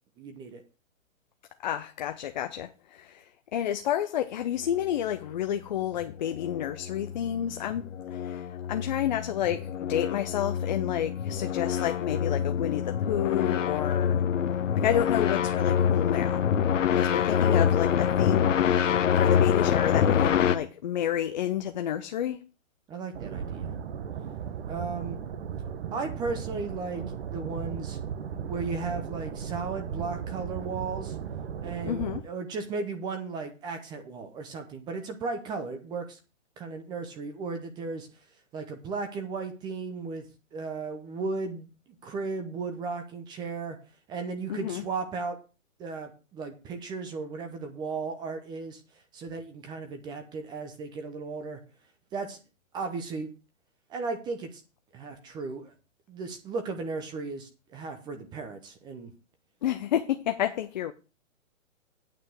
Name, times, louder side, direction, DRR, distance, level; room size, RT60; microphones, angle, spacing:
voice 1, 0.2-0.6 22.9-23.8 24.7-25.2 25.9-28.0 28.5-31.2 31.6-36.2 36.6-38.1 38.5-40.2 40.5-41.7 42.0-43.8 44.1-45.4 45.8-48.8 49.1-51.6 52.1-52.4 52.7-53.3 53.9-54.6 54.9-55.7 56.1-59.1, right 4 dB, 10° right, 0.7 m, -35 dB
voice 2, 1.6-14.2 14.7-16.5 16.9-22.4 31.8-32.2 44.5-44.9 59.6-60.9, left 11 dB, 35° left, 0.6 m, -30 dB
sound 1, 6.0-20.6, left 8 dB, 65° left, 1.1 m, -26 dB
sound 2, 23.1-32.2, right 8 dB, 50° right, 1.2 m, -36 dB
9.0 x 5.3 x 7.7 m
hypercardioid pair, 145°, 40 cm